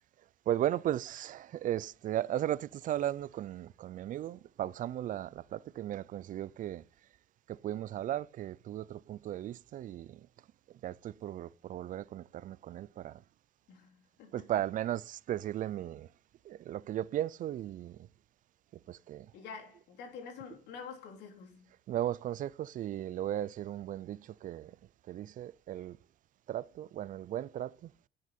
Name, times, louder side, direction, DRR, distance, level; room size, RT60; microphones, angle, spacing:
voice 1, 0.5-6.8 7.5-10.2 10.8-13.2 14.3-16.1 16.5-18.0 18.9-19.3 21.9-24.7 25.1-26.0 26.5-27.9, right 12 dB, 50° right, 0.4 m, -36 dB
voice 2, 13.7-14.6 19.3-21.7, left 6 dB, 90° left, 3.2 m, -47 dB
10.5 x 6.4 x 4.2 m
cardioid pair, 110°, 17 cm